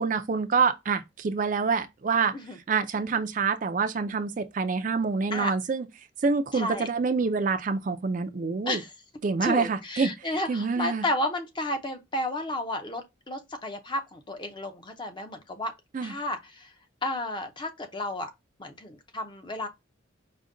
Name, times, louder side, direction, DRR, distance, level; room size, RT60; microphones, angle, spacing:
voice 1, 0.0-2.4 2.7-5.9 6.2-8.8 9.2-10.1 10.5-11.0 15.9-16.1, right 5 dB, 40° right, 0.4 m, -26 dB
voice 2, 6.5-6.9 8.7-8.9 9.4-15.7 16.0-16.7 17.0-18.3 18.6-19.7, left 1 dB, 25° left, 0.6 m, -32 dB
5.0 x 2.2 x 3.7 m
head